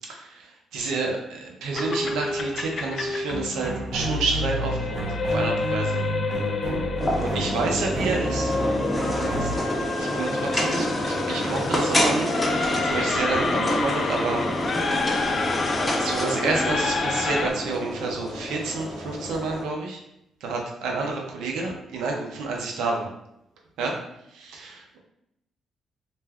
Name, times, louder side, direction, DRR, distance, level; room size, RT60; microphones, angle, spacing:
voice 1, 0.1-6.0 7.2-8.5 9.1-9.5 10.0-12.3 12.8-14.8 16.0-20.0 20.4-23.1 23.8-24.0 24.3-25.0, right 3 dB, 85° right, 0 dB, 0.6 m, -29 dB
sound 1, 1.7-17.5, left 3 dB, 45° left, 0.3 m, -29 dB
sound 2, 3.3-9.6, right 1 dB, 50° right, 0.6 m, -30 dB
sound 3, 7.0-19.6, equal, 20° left, 0.7 m, -28 dB
2.6 x 2.2 x 3.4 m, 0.81 s
cardioid pair, 90°, 0 cm